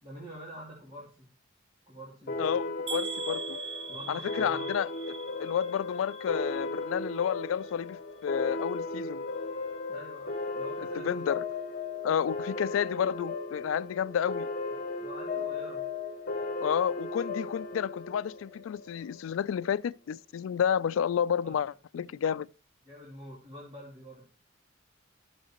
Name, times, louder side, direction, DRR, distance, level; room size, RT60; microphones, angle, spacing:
voice 1, 0.0-1.3 1.9-2.6 3.9-4.6 9.9-11.1 14.7-15.8 21.4-21.5 21.9-22.1 22.9-24.3, equal, 25° right, 2.6 m, -46 dB
sound 1, 2.3-19.4, left 3 dB, 50° left, 1.1 m, -36 dB
voice 2, 2.4-3.6 4.1-9.3 11.0-11.4 12.0-14.5 16.6-22.5, left 8 dB, 80° left, 0.3 m, -31 dB
sound 2, 2.9-6.8 7.1-7.8 8.2-8.3 8.7-8.8, right 5 dB, 80° right, 1.7 m, -41 dB
13.0 x 6.5 x 2.9 m
head